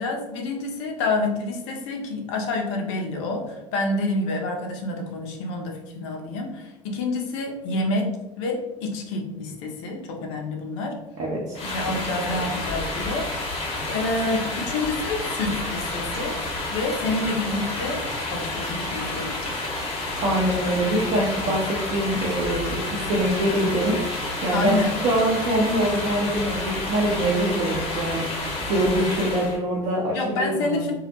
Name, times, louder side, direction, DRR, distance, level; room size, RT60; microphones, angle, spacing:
voice 1, 0.0-11.0 11.6-13.3 13.9-16.4 16.7-18.0 18.3-19.5 24.5-24.9 30.1-30.9, left 2 dB, 65° left, 1 dB, 0.5 m, -28 dB
voice 2, 11.2-11.6 12.3-12.4 20.2-24.7 25.0-30.9, right 1 dB, 45° right, -4 dB, 0.6 m, -24 dB
sound 1, 11.5-29.6, left 2 dB, 35° left, 0.8 m, -30 dB
2.2 x 2.0 x 2.8 m, 1.0 s
figure-of-eight pair, 65°, 16 cm